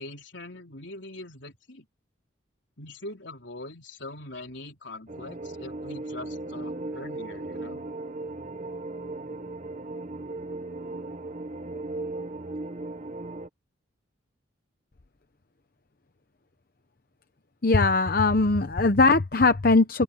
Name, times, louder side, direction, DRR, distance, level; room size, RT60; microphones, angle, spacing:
voice 1, 0.0-1.9 2.8-7.8, left 2 dB, 65° left, 4.0 m, -42 dB
sound 1, 5.1-13.5, right 2 dB, 35° right, 1.0 m, -36 dB
voice 2, 17.6-20.0, left 3 dB, 45° left, 0.8 m, -20 dB
head